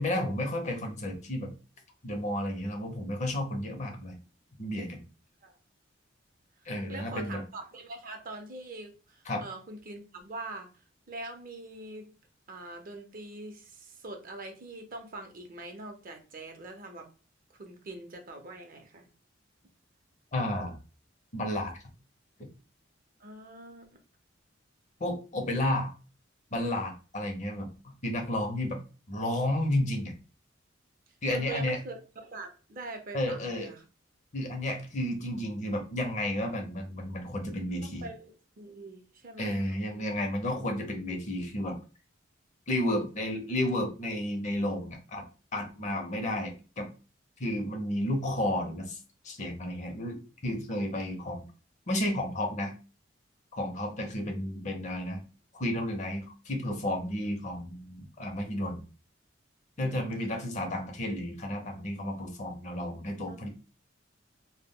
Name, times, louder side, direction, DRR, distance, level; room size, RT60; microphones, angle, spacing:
voice 1, 0.0-1.5 2.0-4.2 4.6-5.0 6.7-7.4 9.3-9.4 20.3-20.8 21.3-21.7 22.4-22.5 25.0-25.9 26.5-28.8 29.1-30.1 31.2-31.8 33.1-33.7 34.3-38.0 39.4-41.8 42.7-45.2 45.5-46.9 47.4-49.0 49.2-51.4 51.9-52.7 53.6-55.2 55.6-58.8 59.8-63.5, left 1 dB, 40° left, 3 dB, 0.6 m, -32 dB
voice 2, 6.9-10.7 11.1-12.1 12.5-17.1 17.5-19.1 23.2-23.9 31.3-33.8 37.8-40.1 59.8-60.5 63.3-63.5, right 2 dB, 45° right, 4 dB, 0.5 m, -43 dB
2.2 x 2.0 x 3.5 m, 0.34 s
head